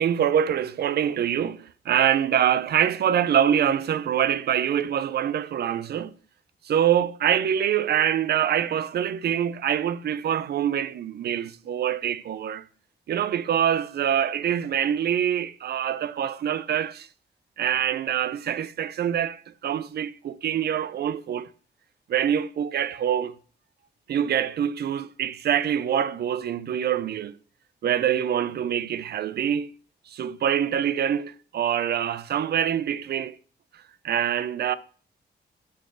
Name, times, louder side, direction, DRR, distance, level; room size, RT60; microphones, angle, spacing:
voice 1, 0.0-6.1 6.6-12.7 13.1-17.1 17.6-21.5 22.1-23.3 24.1-27.3 27.8-29.7 30.1-33.4 34.0-34.7, right 9 dB, 65° right, 0.5 m, -25 dB
9.5 x 4.3 x 6.6 m
wide cardioid pair, 155°, 18 cm